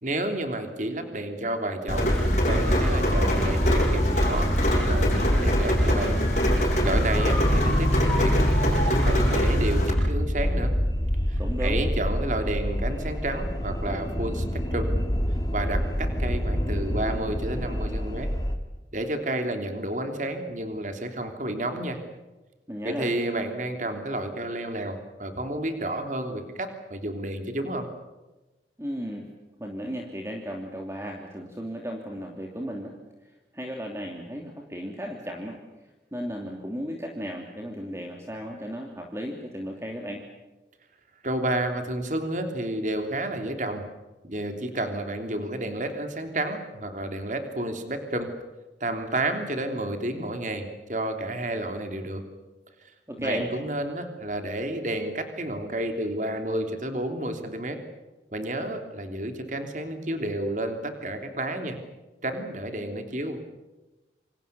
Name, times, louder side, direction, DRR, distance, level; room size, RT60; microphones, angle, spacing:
voice 1, 0.0-2.1 2.4-6.2 6.5-10.7 11.3-14.4 14.7-14.9 15.5-18.3 18.9-22.0 22.8-27.9 41.2-43.9 44.2-48.3 48.8-52.3 53.2-57.8 58.3-61.8 62.2-63.4, right 1 dB, 45° right, 6 dB, 3.3 m, -31 dB
Rain, 1.9-9.9, equal, 40° left, 7.5 m, -24 dB
sound 1, 2.1-18.6, equal, 20° left, 2.6 m, -27 dB
voice 2, 11.4-11.8 22.7-23.1 28.8-29.3 29.6-32.9 33.2-35.6 36.1-40.2 53.1-53.5, equal, 15° right, 1 dB, 2.8 m, -35 dB
28.0 x 26.5 x 7.0 m, 1.1 s
head